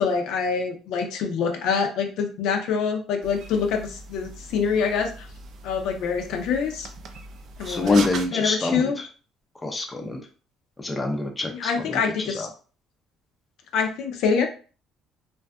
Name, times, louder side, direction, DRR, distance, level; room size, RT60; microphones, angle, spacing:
voice 1, 0.0-5.3 5.6-6.9 7.6-8.0 8.3-9.0 11.5-12.5 13.7-14.5, left 6 dB, 75° left, 3 dB, 0.5 m, -25 dB
unkown from the forest, 3.2-8.3, right 4 dB, 55° right, 0.3 m, -39 dB
voice 2, 7.7-9.1 9.6-10.2 10.8-12.5, left 3 dB, 15° left, 3 dB, 0.4 m, -26 dB
2.5 x 2.4 x 2.2 m, 0.37 s
cardioid pair, 120°, 0 cm